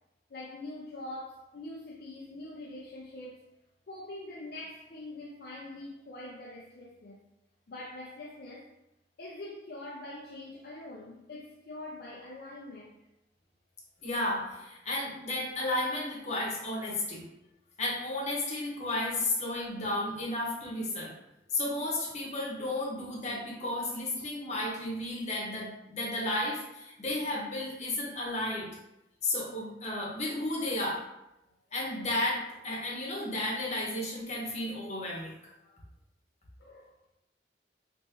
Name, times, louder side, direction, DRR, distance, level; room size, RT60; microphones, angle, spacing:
voice 1, 0.3-3.4 3.9-7.2 7.7-8.7 9.2-13.0 36.6-37.1, left 2 dB, 55° left, 0.4 m, -44 dB
voice 2, 14.0-17.2 17.8-21.1 21.5-28.7 29.2-31.0 31.7-35.3, left 1 dB, 40° left, 0.9 m, -33 dB
3.4 x 3.0 x 2.9 m
head